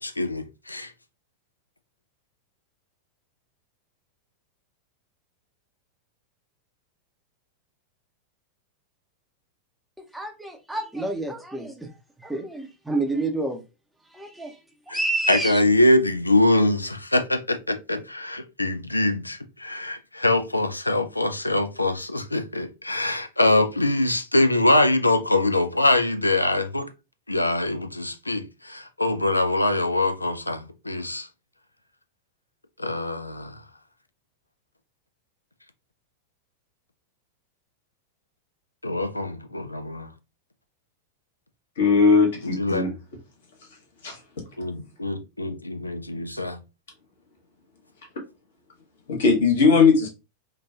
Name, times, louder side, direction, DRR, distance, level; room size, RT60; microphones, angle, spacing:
voice 1, 0.0-0.9 14.9-15.0 15.3-26.9 27.3-31.3 32.8-33.6 38.8-40.1 42.4-42.8 44.6-46.6, left 2 dB, 85° left, 0.3 m, -23 dB
voice 2, 10.1-11.9 12.2-13.6 14.1-14.6 14.9-15.6, right 2 dB, 5° right, 0.6 m, -29 dB
voice 3, 41.8-42.9 44.0-44.2 49.1-50.1, left 4 dB, 60° left, 1.0 m, -18 dB
3.1 x 2.2 x 2.3 m
figure-of-eight pair, 90°, 0 cm